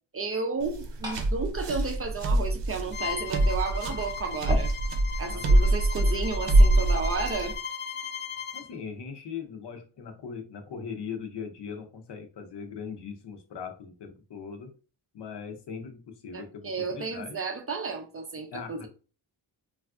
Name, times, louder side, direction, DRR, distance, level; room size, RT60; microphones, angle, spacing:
voice 1, 0.1-4.7 5.2-7.5 16.3-18.9, right 4 dB, 35° right, 0.4 m, -33 dB
Glass / Fill (with liquid), 0.5-7.6, equal, 10° right, 0.8 m, -43 dB
sound 1, 0.6-7.5, right 1 dB, 75° right, 0.7 m, -24 dB
Bowed string instrument, 2.9-8.7, left 7 dB, 25° left, 0.4 m, -37 dB
voice 2, 8.5-14.7 15.1-17.4 18.5-18.9, left 6 dB, 70° left, 0.7 m, -40 dB
3.3 x 2.4 x 2.4 m
wide cardioid pair, 130°, 43 cm